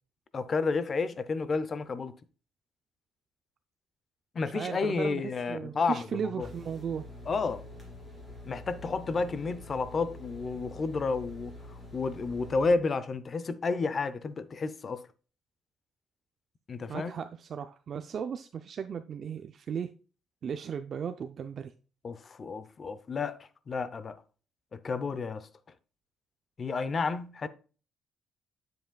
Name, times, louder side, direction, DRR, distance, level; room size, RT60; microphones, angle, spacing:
voice 1, 0.3-2.2 4.3-6.5 7.3-7.6 8.5-15.0 16.7-17.2 22.0-24.2 24.7-25.5 26.6-27.5, left 4 dB, 25° left, 0.5 m, -31 dB
voice 2, 4.5-7.0 16.9-19.9 20.4-21.7, right 7 dB, 35° right, 0.4 m, -36 dB
sound 1, 6.4-12.7, left 2 dB, 10° left, 2.6 m, -46 dB
8.0 x 7.5 x 2.2 m
cardioid pair, 175°, 0 cm